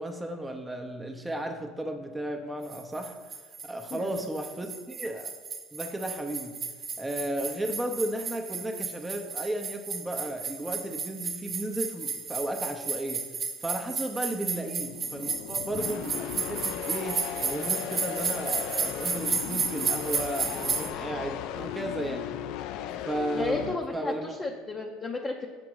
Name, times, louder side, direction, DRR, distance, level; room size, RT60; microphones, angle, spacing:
voice 1, 0.0-3.2 3.6-5.3 5.7-6.6 7.0-13.3 13.6-22.3 23.1-24.3, right 1 dB, 10° right, 3 dB, 0.7 m, -34 dB
sound 1, 2.7-20.9, right 5 dB, 40° right, 0.9 m, -33 dB
voice 2, 14.3-14.6 23.3-25.5, left 3 dB, 25° left, 1 dB, 0.6 m, -34 dB
sound 2, 14.8-23.8, left 11 dB, 65° left, 0.3 m, -36 dB
6.1 x 5.0 x 4.7 m, 1.4 s
supercardioid pair, 90°, 0 cm